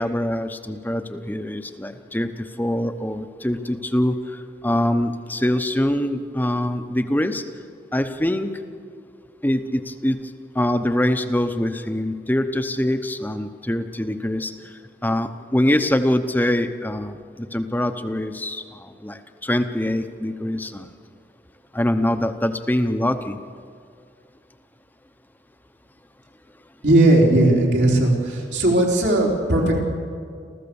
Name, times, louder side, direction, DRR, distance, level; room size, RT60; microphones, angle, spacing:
voice 1, 0.0-7.4 7.9-8.5 9.4-10.2 10.5-14.5 15.0-17.2 17.5-20.9 21.7-23.4, left 1 dB, 10° left, 9 dB, 0.8 m, -24 dB
voice 2, 26.8-29.8, right 1 dB, 80° right, -3 dB, 4.0 m, -17 dB
27.5 x 14.5 x 7.1 m, 2.2 s
head